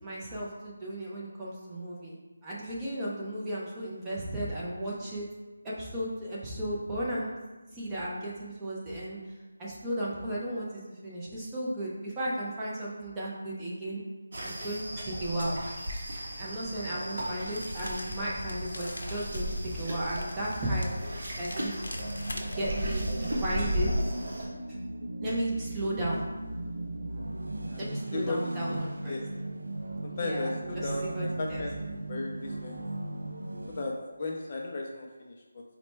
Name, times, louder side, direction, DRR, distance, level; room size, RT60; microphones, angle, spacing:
voice 1, 0.0-2.2 2.4-5.3 5.6-7.4 7.7-9.2 9.6-14.0 14.4-15.6 16.2-20.9 21.4-21.9 22.6-23.9 25.2-26.2 27.8-29.2 30.2-30.5 30.8-31.6, right 1 dB, 10° right, -7 dB, 0.6 m, -34 dB
sound 1, 14.3-24.5, equal, 50° right, 0.9 m, -35 dB
sound 2, 17.5-22.6, left 1 dB, 75° left, 0.7 m, -41 dB
sound 3, 21.9-33.8, right 2 dB, 80° right, 0.4 m, -37 dB
voice 2, 27.7-29.3 30.0-31.7 32.1-32.8 33.8-35.6, left 2 dB, 30° left, -1 dB, 0.4 m, -36 dB
4.1 x 2.1 x 4.4 m, 1.2 s
figure-of-eight pair, 170°, 0 cm